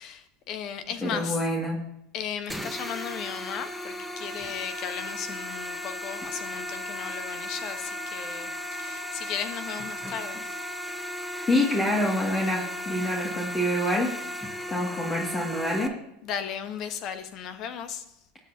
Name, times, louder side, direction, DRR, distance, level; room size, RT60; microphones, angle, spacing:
voice 1, 0.0-1.4 2.1-10.5 16.2-18.0, left 8 dB, 50° left, 1.3 m, -36 dB
voice 2, 1.0-1.8 11.5-14.1 14.7-16.0, left 1 dB, 25° left, 2.3 m, -26 dB
sound 1, 2.5-15.9, equal, 5° left, 1.2 m, -36 dB
19.5 x 8.0 x 2.9 m
hypercardioid pair, 80°, 0 cm